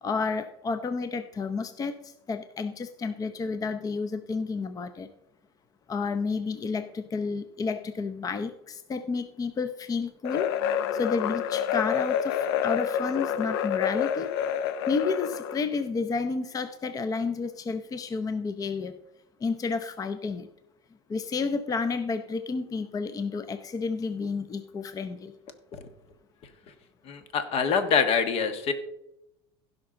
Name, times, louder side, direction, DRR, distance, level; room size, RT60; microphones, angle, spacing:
voice 1, 0.0-5.1 5.9-10.5 10.9-14.3 14.9-18.9 19.4-20.5 21.1-25.3, left 4 dB, 25° left, 10 dB, 0.7 m, -31 dB
sound 1, 10.2-15.7, left 9 dB, 75° left, 0.6 m, -28 dB
voice 2, 27.0-28.7, left 6 dB, 50° left, 9 dB, 1.4 m, -25 dB
16.0 x 5.9 x 3.9 m, 0.83 s
supercardioid pair, 95°, 13 cm